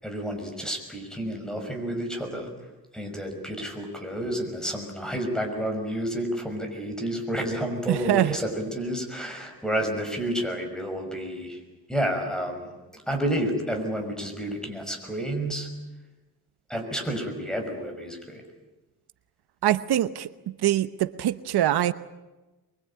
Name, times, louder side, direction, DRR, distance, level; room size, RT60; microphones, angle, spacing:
voice 1, 0.0-2.5 2.9-11.6 11.9-12.7 12.9-15.7 16.7-18.4, equal, ahead, 4 dB, 5.9 m, -30 dB
voice 2, 7.9-8.4 19.6-20.3 20.6-21.9, right 12 dB, 85° right, 13 dB, 1.0 m, -23 dB
23.5 x 23.5 x 8.8 m, 1.1 s
cardioid pair, 125°, 38 cm